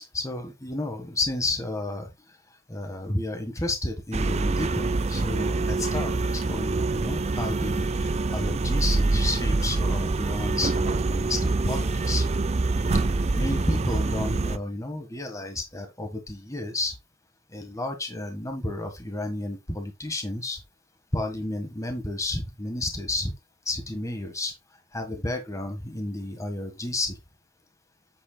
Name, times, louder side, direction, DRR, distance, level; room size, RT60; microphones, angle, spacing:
voice 1, 0.1-2.1 2.7-6.1 6.4-12.3 13.3-16.9 17.5-20.6 21.1-23.3 23.6-24.5 24.9-27.2, left 2 dB, 15° left, 1.6 m, -31 dB
sound 1, 4.1-14.6, right 3 dB, 30° right, 0.5 m, -25 dB
9.0 x 7.7 x 2.3 m
head